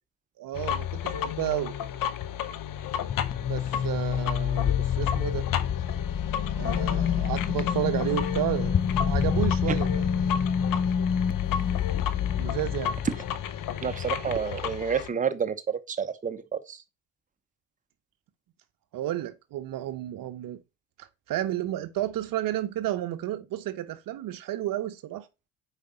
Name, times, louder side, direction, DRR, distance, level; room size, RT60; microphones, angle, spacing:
voice 1, 0.4-1.7 3.5-5.5 6.6-8.8 9.0-10.1 12.4-13.0 18.9-20.6 21.0-25.3, right 13 dB, 55° right, 0.7 m, -32 dB
sound 1, 0.5-15.1, left 10 dB, 55° left, 0.8 m, -31 dB
sound 2, 3.1-14.4, left 7 dB, 25° left, 0.4 m, -29 dB
voice 2, 13.8-16.8, right 7 dB, 20° right, 0.7 m, -30 dB
4.9 x 4.9 x 4.2 m
hypercardioid pair, 60°, 40 cm